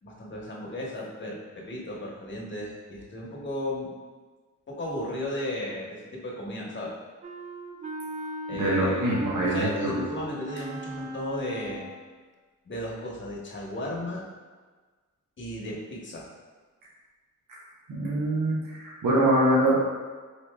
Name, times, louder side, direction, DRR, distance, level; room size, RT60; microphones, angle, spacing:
voice 1, 0.0-3.9 4.7-6.9 8.5-11.9 12.6-14.2 15.4-16.3, left 1 dB, 35° left, -3 dB, 0.9 m, -35 dB
Wind instrument woodwind instrument, 7.2-12.1, right 3 dB, 25° right, 0.4 m, -37 dB
voice 2, 8.5-10.0 17.9-19.7, right 1 dB, 85° right, -6 dB, 0.9 m, -24 dB
4.4 x 2.7 x 2.2 m, 1.4 s
cardioid pair, 60°, 32 cm